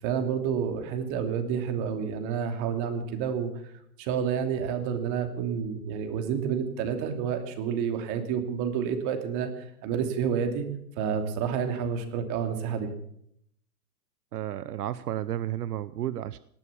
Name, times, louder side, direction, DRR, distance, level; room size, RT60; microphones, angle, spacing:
voice 1, 0.0-3.5 4.0-10.7 11.0-12.9, right 7 dB, 40° right, 7 dB, 2.9 m, -29 dB
voice 2, 14.3-16.4, right 12 dB, 80° right, 16 dB, 0.8 m, -32 dB
18.5 x 11.0 x 7.0 m, 0.71 s
hypercardioid pair, 125°, 45 cm